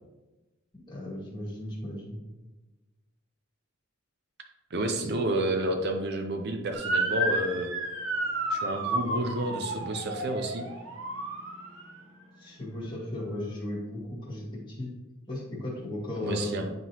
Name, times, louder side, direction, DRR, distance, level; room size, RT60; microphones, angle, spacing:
voice 1, 0.9-2.2 12.4-14.9 15.3-16.7, left 1 dB, 25° left, -5 dB, 2.0 m, -35 dB
voice 2, 4.7-7.7 8.5-10.7 16.2-16.7, right 1 dB, 55° right, 4 dB, 0.6 m, -30 dB
Motor vehicle (road) / Siren, 6.7-12.0, right 1 dB, 75° right, 1.2 m, -31 dB
9.3 x 3.8 x 3.0 m, 1.1 s
head